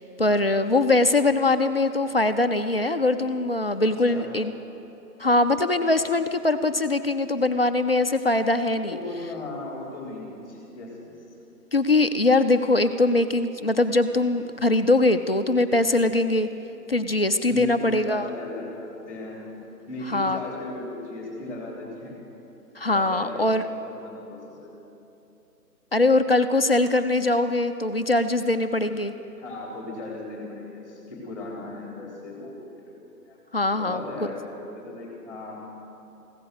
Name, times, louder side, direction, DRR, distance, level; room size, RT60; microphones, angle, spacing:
voice 1, 0.0-4.5 5.2-9.0 11.7-16.5 16.9-18.3 20.1-20.4 22.8-23.6 25.9-29.1 33.5-34.0, left 2 dB, 40° left, 9 dB, 0.4 m, -22 dB
voice 2, 8.9-11.1 17.5-19.4 19.9-22.2 22.9-24.7 29.4-32.9 33.3-33.4 33.7-35.6, left 2 dB, 5° left, -2 dB, 3.4 m, -37 dB
15.5 x 13.5 x 6.4 m, 2.9 s
figure-of-eight pair, 140°, 48 cm